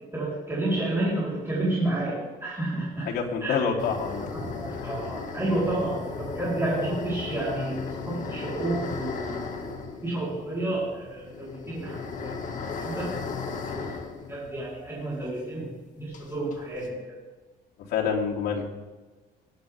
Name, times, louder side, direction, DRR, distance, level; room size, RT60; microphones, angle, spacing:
voice 1, 0.1-3.1 3.4-3.6 4.3-12.3 12.7-13.2 13.5-15.7 16.0-17.2, right 2 dB, 15° right, -8 dB, 4.5 m, -30 dB
voice 2, 3.0-4.3 4.7-5.0 17.9-18.7, left 6 dB, 75° left, -3 dB, 3.2 m, -27 dB
sound 1, 3.8-15.2 15.5-15.6 16.1-16.9, left 5 dB, 50° left, 2.1 m, -36 dB
20.5 x 10.5 x 3.7 m, 1.3 s
cardioid pair, 110°, 17 cm